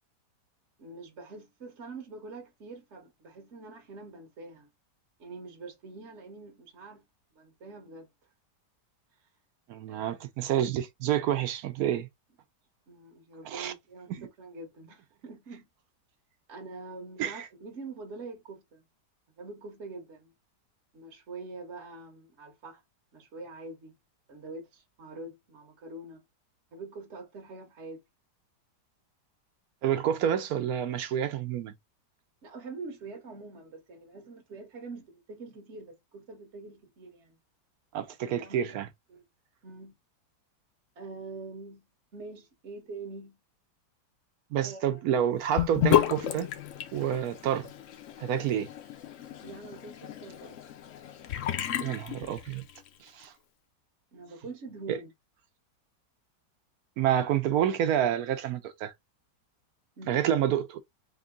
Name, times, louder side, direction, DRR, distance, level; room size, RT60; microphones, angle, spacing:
voice 1, 0.8-4.7 5.2-7.1 7.3-8.1 9.9-10.2 12.9-15.7 16.5-18.8 19.4-20.3 20.9-22.8 23.1-23.9 24.3-26.2 26.7-28.0 32.4-37.4 38.1-38.8 39.1-39.2 39.6-39.9 41.0-41.9 42.1-43.4 44.6-45.0 49.4-50.6 54.1-55.1 60.0-60.3, right 3 dB, 50° right, 1.1 m, -45 dB
voice 2, 9.7-12.1 13.4-13.7 14.1-14.3 17.2-17.5 29.8-31.7 37.9-38.9 44.5-46.5 46.9-47.7 48.2-48.7 51.8-52.6 53.0-53.3 54.9-55.0 57.0-58.9 60.1-60.8, right 10 dB, 70° right, 1.0 m, -28 dB
Sink (filling or washing) / Bathtub (filling or washing), 45.6-52.9, left 12 dB, 65° left, 0.8 m, -31 dB
3.6 x 2.6 x 3.6 m
omnidirectional pair, 1.8 m